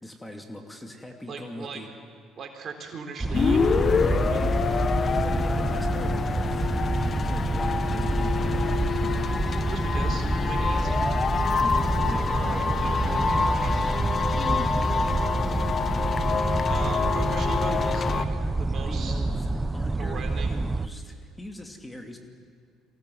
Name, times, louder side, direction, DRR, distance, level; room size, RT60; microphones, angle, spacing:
voice 1, 0.0-1.9 4.4-4.7 5.1-6.7 7.2-8.6 10.8-11.0 11.6-12.2 14.3-14.9 18.9-22.2, left 1 dB, 10° left, 3 dB, 2.7 m, -41 dB
voice 2, 1.3-1.8 2.4-4.5 9.7-11.0 12.1-13.8 16.2-18.3 18.6-19.2 20.0-20.6, right 5 dB, 50° right, 3 dB, 3.8 m, -39 dB
sound 1, 3.2-20.9, right 2 dB, 20° right, 0.9 m, -27 dB
sound 2, 3.3-18.2, left 5 dB, 40° left, 1.2 m, -26 dB
23.0 x 17.0 x 7.9 m, 2.2 s
supercardioid pair, 75°, 0 cm